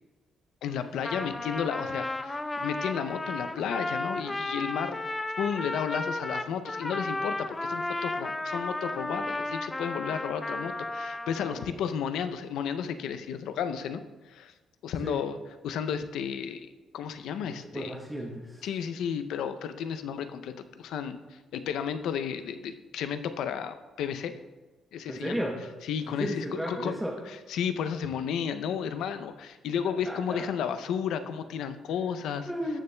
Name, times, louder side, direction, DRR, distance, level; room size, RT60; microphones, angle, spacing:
voice 1, 0.6-5.1 5.4-14.5 14.8-15.4 15.6-16.7 16.9-17.9 18.6-24.3 24.9-25.4 25.8-26.9 27.3-32.5, left 7 dB, 80° left, 10 dB, 0.5 m, -33 dB
Trumpet, 0.8-11.7, left 2 dB, 15° left, 0.4 m, -34 dB
voice 2, 17.7-18.7 25.1-25.6 26.2-27.1 30.1-30.4 32.5-32.8, equal, 5° right, -1 dB, 0.9 m, -34 dB
13.5 x 6.7 x 2.2 m, 1.2 s
cardioid pair, 90°, 0 cm